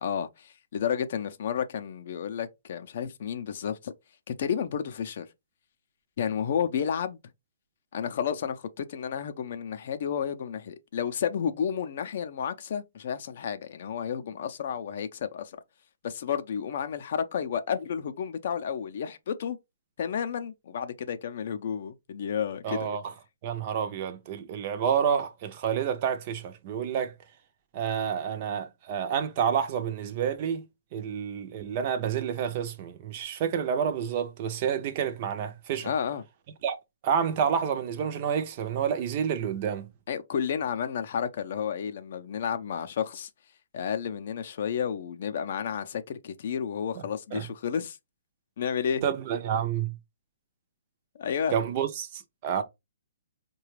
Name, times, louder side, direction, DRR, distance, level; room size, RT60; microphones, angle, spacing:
voice 1, 0.0-3.9 4.3-5.3 6.2-7.2 7.9-15.6 16.0-19.6 20.0-22.9 35.8-36.2 40.1-43.3 43.7-48.0 48.6-49.0 51.2-51.5, left 7 dB, 45° left, 0.5 m, -31 dB
voice 2, 22.6-23.1 23.4-27.1 27.7-30.6 30.9-35.9 36.6-36.8 37.0-39.9 47.0-47.1 47.3-47.5 49.0-50.0 51.5-52.6, right 8 dB, 30° right, 0.5 m, -29 dB
4.8 x 2.2 x 3.1 m
hypercardioid pair, 165°, 0 cm